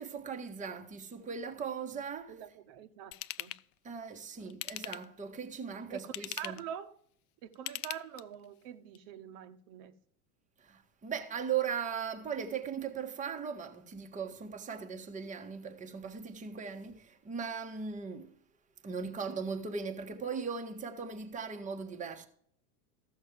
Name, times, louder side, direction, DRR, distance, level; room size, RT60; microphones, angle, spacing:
voice 1, 0.0-2.4 3.8-6.6 10.6-18.4 18.8-22.3, right 6 dB, 15° right, 1.2 m, -38 dB
voice 2, 2.3-3.5 4.4-4.6 5.9-7.0 7.4-9.9, right 10 dB, 50° right, 1.2 m, -45 dB
Ratchet pawl / Tools, 3.1-3.6 4.5-5.2 6.0-6.7 7.5-8.4 8.9-9.0, left 17 dB, 65° left, 0.6 m, -40 dB
14.5 x 6.5 x 4.7 m
hypercardioid pair, 115°, 47 cm